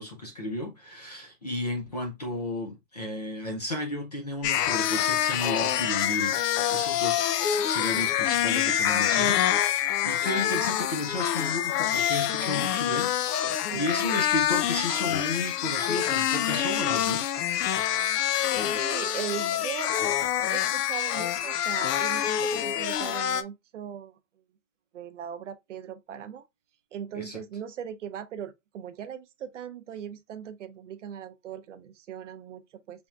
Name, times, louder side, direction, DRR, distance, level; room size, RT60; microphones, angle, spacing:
voice 1, 0.0-13.4 13.7-17.3 27.1-27.4, left 1 dB, 30° left, 0.4 m, -33 dB
sound 1, 4.4-23.4, left 11 dB, 85° left, 0.6 m, -26 dB
voice 2, 13.7-14.0 18.7-19.9 20.5-24.2 24.9-26.5 26.9-33.1, right 9 dB, 55° right, 0.5 m, -39 dB
4.2 x 3.5 x 2.3 m
hypercardioid pair, 175°, 46 cm